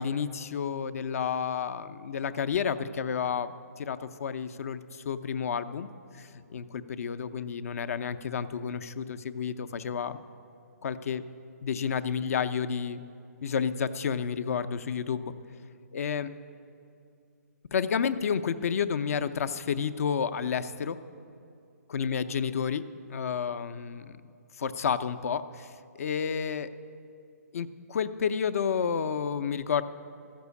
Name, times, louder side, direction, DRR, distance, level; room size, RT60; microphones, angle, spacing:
voice 1, 0.0-5.9 6.2-10.2 10.8-11.2 11.6-13.0 13.4-15.3 15.9-16.3 17.7-21.0 21.9-22.8 23.1-24.2 24.6-25.7 26.0-26.7 27.5-29.8, left 7 dB, 60° left, 12 dB, 0.6 m, -30 dB
14.0 x 6.1 x 8.2 m, 2.5 s
hypercardioid pair, 155°, 9 cm